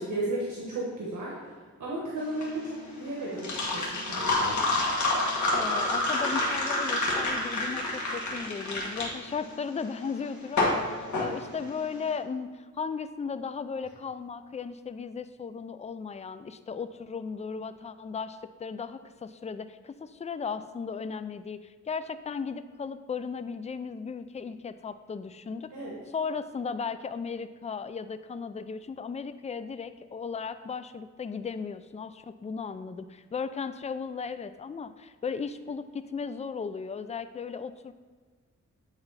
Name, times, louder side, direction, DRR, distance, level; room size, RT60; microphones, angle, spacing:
voice 1, 0.0-1.5 1.8-4.6 25.7-25.9, right 1 dB, 90° right, -5 dB, 1.2 m, -34 dB
sound 1, 2.2-12.1, left 2 dB, 75° left, 1.5 m, -28 dB
voice 2, 5.5-25.7 26.1-37.9, left 5 dB, 25° left, 11 dB, 0.3 m, -36 dB
8.9 x 3.9 x 4.0 m, 1.5 s
cardioid pair, 75°, 29 cm